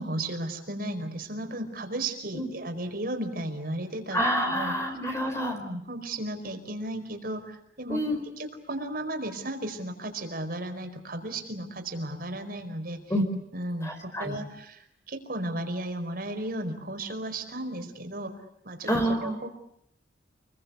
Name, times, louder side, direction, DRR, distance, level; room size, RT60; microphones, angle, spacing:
voice 1, 0.0-4.2 4.5-4.7 5.5-8.0 8.4-13.0 13.5-14.8 15.1-18.3 18.6-18.9 19.2-19.5, right 1 dB, 55° right, 6 dB, 4.8 m, -34 dB
voice 2, 4.1-5.6 7.9-8.2 13.1-13.2 13.8-14.4 18.9-19.4, equal, 15° left, 3 dB, 4.5 m, -27 dB
29.5 x 22.0 x 8.3 m, 0.71 s
head